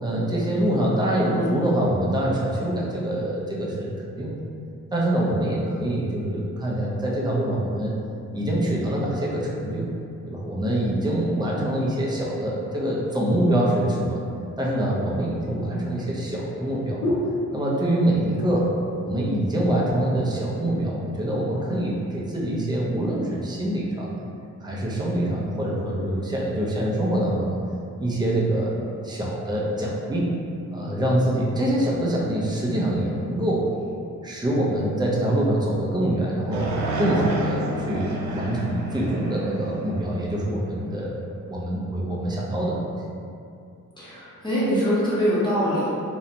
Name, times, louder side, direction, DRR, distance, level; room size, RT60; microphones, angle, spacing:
voice 1, 0.0-4.4 4.9-7.9 8.3-9.9 10.3-14.2 14.6-17.0 17.5-18.7 19.0-24.1 24.6-27.6 28.0-28.7 29.0-30.3 30.7-33.7 34.2-36.7 37.0-41.2 41.5-42.9, right 1 dB, 15° right, -4 dB, 0.4 m, -25 dB
sound 1, 14.9-18.0 18.3-18.8 19.2-19.3 19.6-20.3 20.9-21.7 22.3-22.5, left 1 dB, 60° left, 0.7 m, -33 dB
sound 2, 36.5-40.9, right 1 dB, 75° right, 0.5 m, -30 dB
voice 2, 44.0-45.9, equal, 15° left, -10 dB, 0.8 m, -23 dB
2.6 x 2.1 x 2.6 m, 2.5 s
cardioid pair, 120°, 29 cm